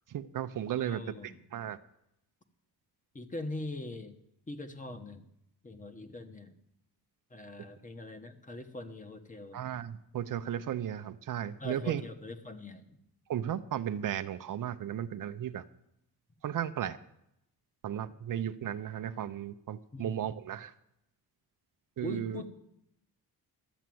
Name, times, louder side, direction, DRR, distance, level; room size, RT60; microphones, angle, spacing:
voice 1, 0.1-1.1 1.5-1.8 9.5-12.0 13.3-15.6 16.4-17.0 17.8-20.7 22.0-22.4, right 10 dB, 55° right, 11 dB, 0.6 m, -35 dB
voice 2, 0.7-1.4 3.1-4.1 4.5-5.2 5.6-6.5 7.3-9.6 11.6-13.0 19.9-20.4 22.0-22.5, left 2 dB, 20° left, 8 dB, 1.1 m, -42 dB
12.5 x 8.3 x 7.6 m, 0.80 s
cardioid pair, 135°, 38 cm